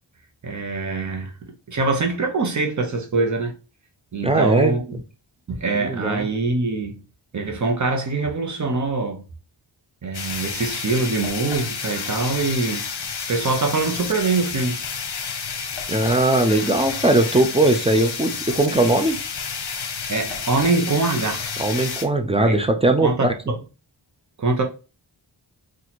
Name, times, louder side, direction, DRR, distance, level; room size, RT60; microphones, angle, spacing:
voice 1, 0.4-1.3 1.7-3.5 4.1-5.0 5.5-7.0 7.3-9.2 10.0-12.9 13.3-14.8 20.1-21.4 22.4-22.6 23.0-23.6 24.4-24.6, right 3 dB, 40° right, 0.9 m, -23 dB
voice 2, 4.2-4.7 5.7-6.3 15.9-19.2 21.6-23.3, right 2 dB, 15° right, 0.4 m, -19 dB
sound 1, 10.1-22.1, left 6 dB, 65° left, 0.8 m, -30 dB
4.1 x 2.5 x 2.9 m
wide cardioid pair, 130°, 44 cm